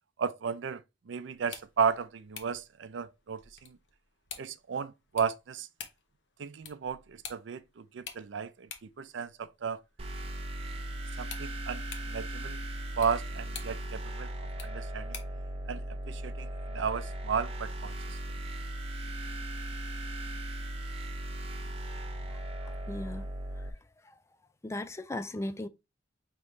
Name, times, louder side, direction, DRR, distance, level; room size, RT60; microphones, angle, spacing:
voice 1, 0.2-3.8 4.4-5.7 6.4-8.7 9.0-9.8 11.2-12.6 13.0-14.3 14.6-15.2 15.7-18.2, right 6 dB, 80° right, 0.4 m, -34 dB
sound 1, 1.3-15.5, left 7 dB, 70° left, 0.9 m, -50 dB
sound 2, 10.0-23.7, right 1 dB, 30° right, 0.7 m, -38 dB
voice 2, 22.9-23.3 24.1-24.2 24.6-25.7, left 1 dB, 15° left, 0.3 m, -37 dB
5.4 x 3.0 x 3.1 m
head